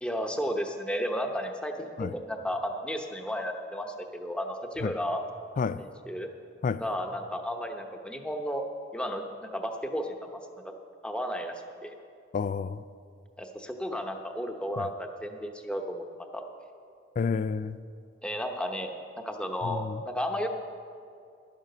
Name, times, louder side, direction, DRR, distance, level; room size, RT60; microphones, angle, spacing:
voice 1, 0.0-5.2 5.8-6.3 6.8-8.6 8.9-10.4 10.6-10.7 11.0-11.9 13.4-16.1 16.3-16.4 18.2-18.9 19.2-20.5, equal, 5° left, 4 dB, 0.8 m, -33 dB
voice 2, 12.3-12.8 14.8-14.9 17.2-17.8 19.6-20.0, left 5 dB, 45° left, 15 dB, 0.3 m, -30 dB
11.0 x 9.0 x 6.7 m, 2.4 s
head